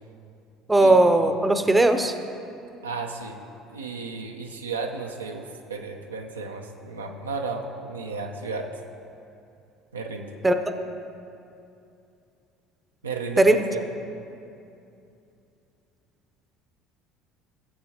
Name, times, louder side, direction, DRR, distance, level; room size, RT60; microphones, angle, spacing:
voice 1, 0.7-2.1 10.4-10.6 13.4-13.6, right 2 dB, 15° right, 8 dB, 0.6 m, -18 dB
voice 2, 2.8-3.4 3.7-8.7 9.9-10.3 13.0-13.4 13.7-13.8, right 4 dB, 85° right, 2 dB, 0.6 m, -33 dB
16.0 x 7.7 x 2.8 m, 2.6 s
figure-of-eight pair, 60°, 0 cm